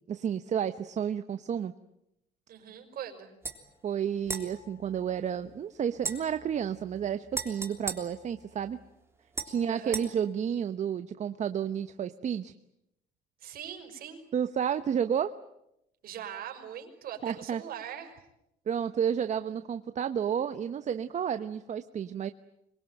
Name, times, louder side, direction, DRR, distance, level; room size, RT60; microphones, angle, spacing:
voice 1, 0.1-1.7 3.8-8.8 9.4-12.5 14.3-15.3 17.2-17.6 18.7-22.3, right 8 dB, 45° right, 10 dB, 1.0 m, -31 dB
voice 2, 2.5-3.3 9.7-10.0 13.4-14.2 16.0-18.2, right 9 dB, 60° right, 4 dB, 5.8 m, -41 dB
sound 1, 3.4-3.6 4.2-5.5 6.0-8.9 9.3-10.1, right 3 dB, 15° right, 3.5 m, -39 dB
26.0 x 23.0 x 9.1 m, 0.83 s
cardioid pair, 110°, 17 cm